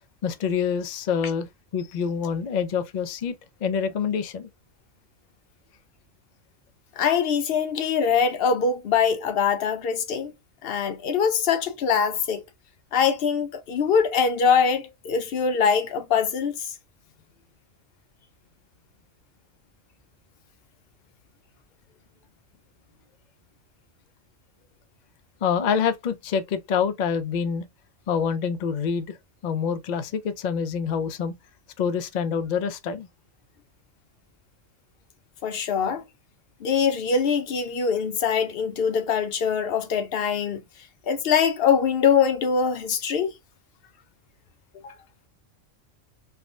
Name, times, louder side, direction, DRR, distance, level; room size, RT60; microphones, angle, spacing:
voice 1, 0.2-1.5 1.7-3.3 3.6-4.5 25.4-27.6 28.1-29.2 29.4-31.3 31.8-33.1, left 6 dB, 80° left, 0.4 m, -26 dB
voice 2, 7.0-10.3 10.6-12.4 12.9-16.5 35.4-36.0 36.6-40.6 41.1-43.3 44.8-44.9, left 6 dB, 60° left, 0.7 m, -23 dB
3.4 x 2.1 x 2.4 m
omnidirectional pair, 1.3 m